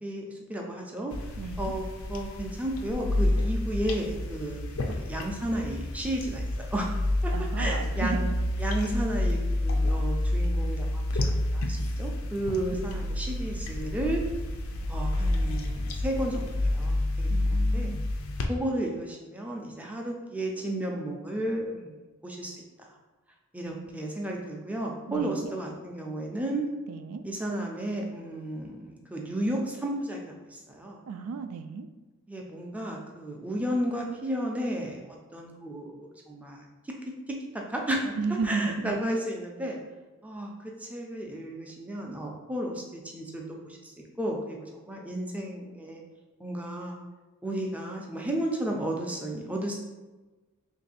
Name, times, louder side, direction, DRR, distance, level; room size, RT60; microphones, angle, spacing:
voice 1, 0.0-1.1 1.6-1.8 2.1-6.9 7.2-8.2 8.6-14.2 14.9-17.9 18.5-22.5 23.5-26.7 27.2-31.0 32.3-36.6 37.3-37.4 37.7-38.2 38.4-39.8 40.2-46.0 46.4-47.0 47.4-49.8, right 1 dB, 5° right, 0 dB, 0.4 m, -33 dB
sound 1, 1.1-18.5, left 1 dB, 65° left, 0.4 m, -29 dB
voice 2, 1.4-1.7 7.3-8.3 12.5-12.8 17.3-18.0 23.6-24.1 25.1-25.5 26.9-27.2 31.1-31.9 38.2-39.0, right 4 dB, 80° right, 9 dB, 0.3 m, -34 dB
3.1 x 2.6 x 4.1 m, 1.2 s
head